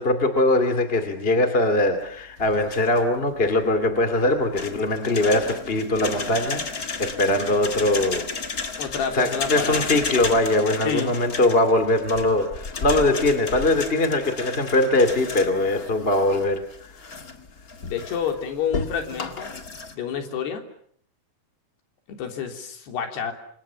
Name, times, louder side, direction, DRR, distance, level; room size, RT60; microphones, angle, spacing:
voice 1, 0.0-8.3 8.6-8.9 9.1-17.2, left 2 dB, 20° left, 8 dB, 1.8 m, -22 dB
sound 1, 2.4-3.2 4.6-19.9, left 4 dB, 35° left, 1.4 m, -33 dB
voice 2, 8.8-10.0 10.8-11.2 17.9-19.6 19.9-20.7 22.1-23.3, left 7 dB, 80° left, 5 dB, 5.4 m, -29 dB
29.5 x 26.0 x 7.3 m, 0.63 s
omnidirectional pair, 4.6 m